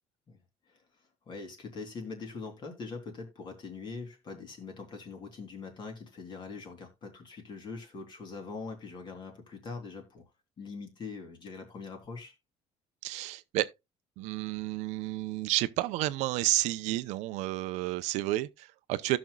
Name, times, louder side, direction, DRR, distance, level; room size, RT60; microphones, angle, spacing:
voice 1, 1.3-10.2 10.6-12.3, left 4 dB, 40° left, 3.4 m, -42 dB
voice 2, 13.0-13.7 14.2-19.2, right 17 dB, 90° right, 0.6 m, -31 dB
16.5 x 6.1 x 2.3 m
cardioid pair, 125°, 12 cm